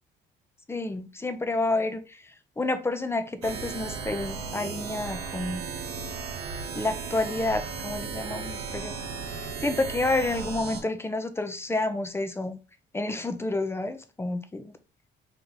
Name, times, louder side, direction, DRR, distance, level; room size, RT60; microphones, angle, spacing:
voice 1, 0.7-5.6 6.7-9.0 9.3-12.6 12.9-14.7, left 2 dB, 10° left, 0.6 m, -29 dB
sound 1, 3.4-10.8, right 5 dB, 85° right, 0.9 m, -35 dB
3.6 x 2.9 x 3.8 m
cardioid pair, 90°, 21 cm